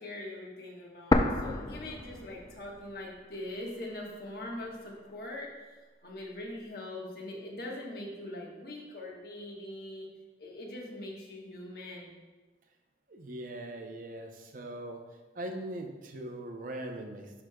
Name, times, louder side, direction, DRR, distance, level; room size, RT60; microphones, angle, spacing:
voice 1, 0.0-5.8 6.0-10.1 10.4-12.1, left 1 dB, 60° left, -2 dB, 1.3 m, -42 dB
sound 1, 1.1-3.1 3.3-3.4 4.2-5.1, left 2 dB, 20° left, 0.3 m, -30 dB
voice 2, 13.1-15.0 15.3-17.4, right 1 dB, 50° right, 3 dB, 0.6 m, -40 dB
11.0 x 5.0 x 2.3 m, 1.2 s
head